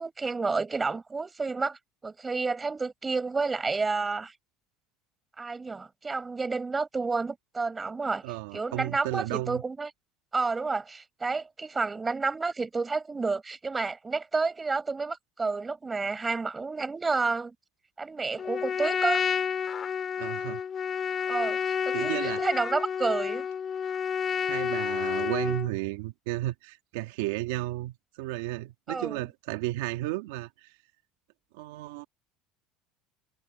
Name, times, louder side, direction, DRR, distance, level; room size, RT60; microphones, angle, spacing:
voice 1, 0.0-4.4 5.4-9.9 10.3-17.5 18.0-19.3 21.3-23.5 28.9-29.2, right 4 dB, 15° right, 6.1 m, -30 dB
voice 2, 8.2-9.6 20.2-20.6 21.9-22.4 24.4-30.7 31.5-32.0, right 17 dB, 90° right, 2.1 m, -33 dB
Trumpet, 18.4-25.7, left 7 dB, 25° left, 2.7 m, -30 dB
cardioid pair, 150°, 0 cm